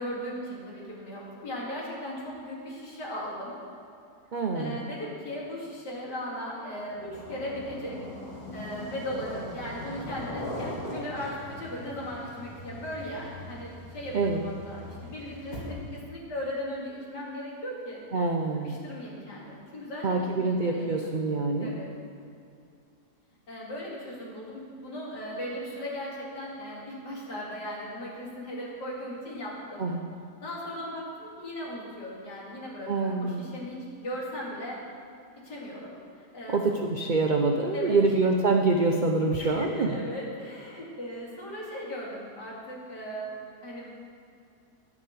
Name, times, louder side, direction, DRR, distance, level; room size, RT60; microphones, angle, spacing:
voice 1, 0.0-3.6 4.5-8.0 8.5-18.0 18.6-21.2 21.6-21.9 23.5-29.9 30.4-34.8 35.4-36.6 37.7-38.0 39.4-43.3 43.6-43.9, equal, 80° left, -5 dB, 2.9 m, -37 dB
voice 2, 4.3-4.8 14.1-14.4 18.1-18.8 20.0-21.8 29.8-30.0 32.9-33.4 36.5-39.9, right 3 dB, 75° right, 2 dB, 0.4 m, -25 dB
sound 1, 6.9-16.0, left 1 dB, 25° left, 2.2 m, -40 dB
11.0 x 5.2 x 8.5 m, 2.5 s
omnidirectional pair, 1.8 m